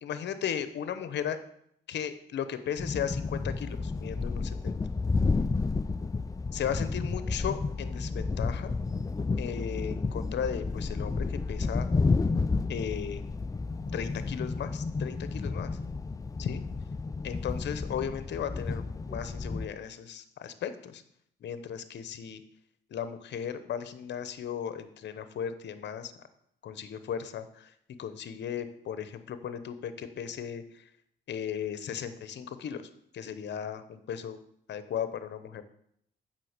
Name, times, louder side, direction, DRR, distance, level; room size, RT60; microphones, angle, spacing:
voice 1, 0.0-1.4 1.9-4.8 6.5-8.7 9.4-11.9 12.7-13.2 13.9-15.7 16.4-16.6 17.2-21.0 21.4-22.4 22.9-26.1 26.6-27.7 28.0-30.8 31.3-32.8 33.1-34.4 34.7-35.6, left 8 dB, 60° left, 11 dB, 0.9 m, -36 dB
sound 1, 2.8-19.7, left 4 dB, 15° left, 0.4 m, -31 dB
7.6 x 5.8 x 6.6 m, 0.71 s
cardioid pair, 90°, 20 cm